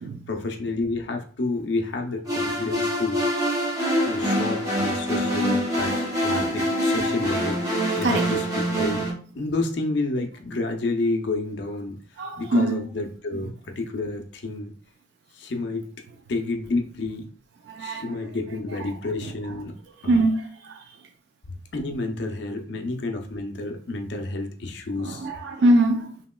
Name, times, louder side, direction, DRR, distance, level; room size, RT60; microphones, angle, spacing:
voice 1, 0.3-3.5 4.0-8.4 8.7-9.0 9.3-12.0 12.4-14.7 15.3-15.9 16.3-17.3 17.8-19.7 20.0-20.2 21.5-25.3, left 2 dB, 65° left, 0.5 m, -30 dB
sound 1, 2.3-9.1, equal, 20° right, 0.8 m, -25 dB
voice 2, 4.0-4.5 5.2-5.6 6.3-6.8 8.0-8.3 12.2-12.8 17.6-18.3 18.7-19.6 20.1-21.0 25.0-26.2, right 1 dB, 60° right, 0.3 m, -25 dB
2.9 x 2.8 x 2.2 m
head